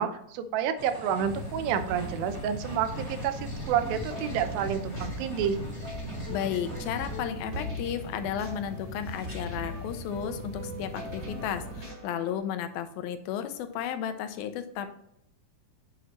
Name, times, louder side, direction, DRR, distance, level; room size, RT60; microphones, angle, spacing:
voice 1, 0.0-3.4 3.7-5.6, right 8 dB, 85° right, 9 dB, 2.6 m, -29 dB
sound 1, 0.8-7.3, equal, 5° left, 2.3 m, -41 dB
sound 2, 1.2-11.9, equal, 65° right, 3.8 m, -40 dB
sound 3, 4.0-12.4, left 1 dB, 20° right, 1.6 m, -43 dB
voice 2, 6.3-14.9, left 9 dB, 90° left, 9 dB, 2.6 m, -33 dB
9.1 x 6.2 x 3.0 m, 0.75 s
omnidirectional pair, 4.1 m